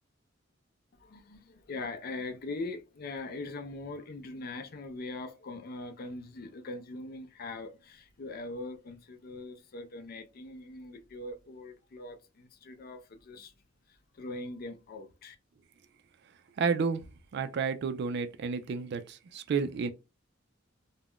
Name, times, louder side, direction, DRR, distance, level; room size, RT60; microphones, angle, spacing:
voice 1, 1.0-13.5 13.9-15.4, left 2 dB, 50° left, 0.4 m, -41 dB
voice 2, 16.6-17.0 17.3-19.9, right 5 dB, 55° right, 0.3 m, -31 dB
2.4 x 2.1 x 3.5 m
head